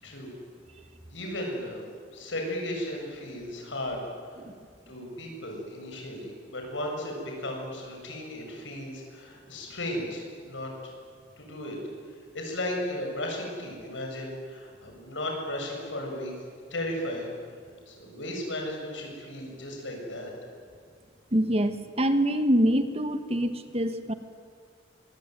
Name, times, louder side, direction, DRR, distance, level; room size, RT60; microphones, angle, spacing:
voice 1, 0.0-0.3 1.1-4.0 4.9-10.9 11.4-11.8 12.1-16.3 16.7-17.3 17.9-20.3, left 1 dB, 75° left, 1 dB, 7.8 m, -35 dB
voice 2, 21.3-24.1, equal, 35° right, 9 dB, 1.5 m, -25 dB
25.0 x 23.0 x 9.4 m, 2.1 s
head